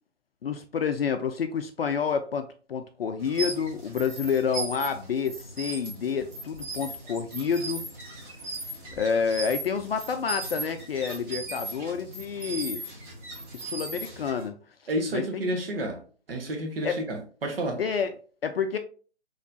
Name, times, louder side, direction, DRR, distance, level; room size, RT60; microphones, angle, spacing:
voice 1, 0.4-7.8 8.9-12.8 13.5-14.6 15.1-15.2 16.8-17.0 17.8-18.1 18.4-18.8, left 6 dB, 60° left, 0.4 m, -29 dB
sound 1, 3.2-14.5, right 2 dB, 15° right, 1.0 m, -38 dB
voice 2, 14.9-16.0 16.3-17.8, right 1 dB, 55° right, 1.2 m, -30 dB
4.1 x 3.1 x 2.6 m
figure-of-eight pair, 140°, 34 cm